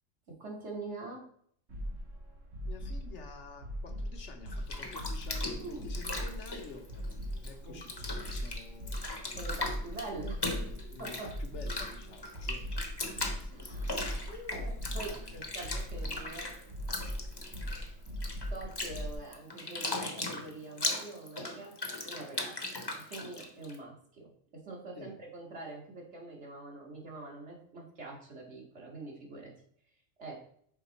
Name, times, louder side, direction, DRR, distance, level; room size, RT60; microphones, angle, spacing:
voice 1, 0.3-1.2 5.6-5.9 7.6-7.8 9.4-10.7 11.0-11.3 13.5-16.6 18.5-22.5 22.8-29.5 30.2-30.4, right 3 dB, 65° right, -1 dB, 2.0 m, -45 dB
sound 1, 1.7-19.1, equal, 90° right, 2.0 m, -40 dB
voice 2, 2.6-6.9 7.4-9.0 10.9-12.7 13.2-14.0 15.1-15.5 25.0-25.2, left 4 dB, 70° left, 4 dB, 1.2 m, -50 dB
Bathtub (filling or washing), 4.4-7.5 7.8-23.7, left 2 dB, 25° left, 0.8 m, -38 dB
5.8 x 4.7 x 4.0 m, 0.63 s
omnidirectional pair, 1.3 m